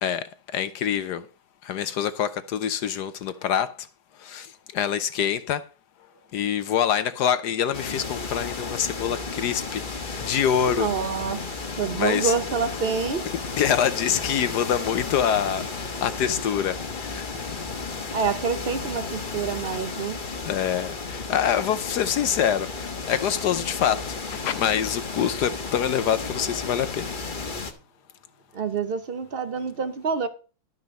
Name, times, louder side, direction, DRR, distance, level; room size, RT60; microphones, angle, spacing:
voice 1, 0.5-1.3 1.6-3.7 4.2-5.7 6.3-10.9 11.9-12.3 13.6-17.5 17.7-17.9 20.4-27.1, left 9 dB, 65° left, 1.1 m, -25 dB
sound 1, 7.7-27.7, left 4 dB, 30° left, 1.1 m, -33 dB
voice 2, 10.7-13.2 18.1-20.4 28.5-30.3, right 5 dB, 55° right, 0.6 m, -27 dB
12.0 x 6.1 x 5.3 m
omnidirectional pair, 2.2 m